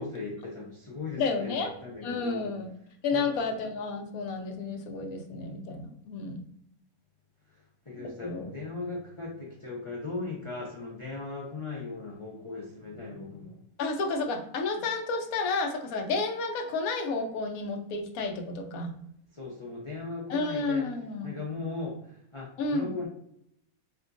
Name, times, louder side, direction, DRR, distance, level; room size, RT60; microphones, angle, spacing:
voice 1, 0.0-2.5 3.1-3.5 7.5-13.6 19.3-20.8 21.2-23.1, left 3 dB, 40° left, -4 dB, 0.4 m, -38 dB
voice 2, 1.2-1.7 2.0-2.7 3.0-6.4 8.0-8.5 13.8-18.9 20.3-21.3 22.6-22.9, left 3 dB, 80° left, 4 dB, 1.0 m, -31 dB
4.3 x 2.3 x 2.5 m, 0.73 s
omnidirectional pair, 1.5 m